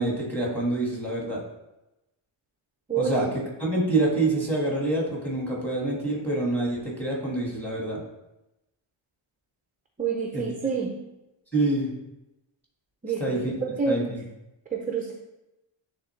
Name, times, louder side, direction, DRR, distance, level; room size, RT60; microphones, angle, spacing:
voice 1, 0.0-1.4 2.9-3.3 3.6-8.0 10.3-10.4 11.5-11.9 13.2-14.2, right 2 dB, 5° left, -4 dB, 1.5 m, -26 dB
voice 2, 2.9-3.3 10.0-11.0 13.0-14.2 14.7-15.1, right 5 dB, 20° right, 1 dB, 0.4 m, -28 dB
9.3 x 3.6 x 3.1 m, 0.94 s
cardioid pair, 170°, 50 cm